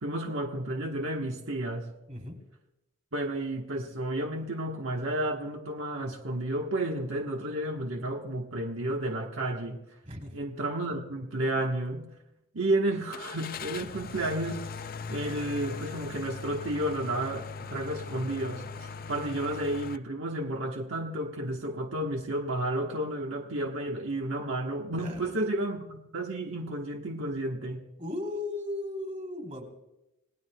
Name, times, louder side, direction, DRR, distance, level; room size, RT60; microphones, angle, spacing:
voice 1, 0.0-1.9 3.1-9.8 10.3-12.1 12.5-14.7 15.1-27.8, right 1 dB, 70° right, 1 dB, 1.3 m, -32 dB
voice 2, 2.1-2.4 10.0-10.4 25.0-25.4 28.0-29.7, left 2 dB, 35° right, 3 dB, 3.5 m, -36 dB
Car / Engine starting, 13.1-20.0, left 5 dB, 45° left, 0.5 m, -40 dB
29.0 x 18.5 x 2.3 m, 0.95 s
head